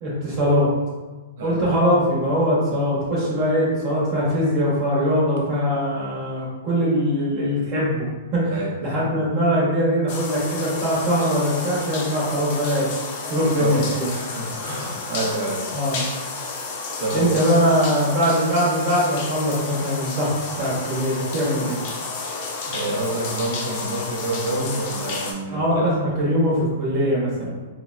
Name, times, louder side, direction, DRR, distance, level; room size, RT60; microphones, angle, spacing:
voice 1, 0.0-0.7 1.4-12.9 13.3-14.1 15.7-16.1 17.1-21.9 25.5-27.5, equal, 35° right, -6 dB, 1.0 m, -22 dB
sound 1, 10.1-25.3, left 3 dB, 45° left, 0.5 m, -31 dB
voice 2, 13.6-15.7 17.0-17.4 22.7-25.9, right 2 dB, 60° right, -2 dB, 0.7 m, -28 dB
3.4 x 2.1 x 2.4 m, 1.2 s
hypercardioid pair, 155°, 0 cm